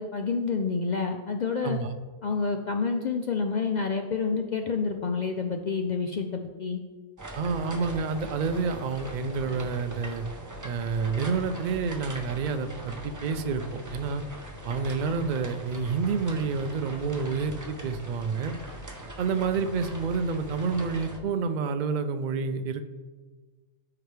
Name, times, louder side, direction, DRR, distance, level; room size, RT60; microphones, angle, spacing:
voice 1, 0.0-1.8 2.2-6.8, left 5 dB, 70° left, 4 dB, 0.4 m, -28 dB
sound 1, 7.2-21.2, right 1 dB, 20° right, 0.5 m, -41 dB
voice 2, 7.3-10.2 10.6-14.2 14.6-18.5 19.2-22.9, right 5 dB, 90° right, 9 dB, 0.4 m, -29 dB
12.5 x 4.8 x 3.3 m, 1.4 s
omnidirectional pair, 1.4 m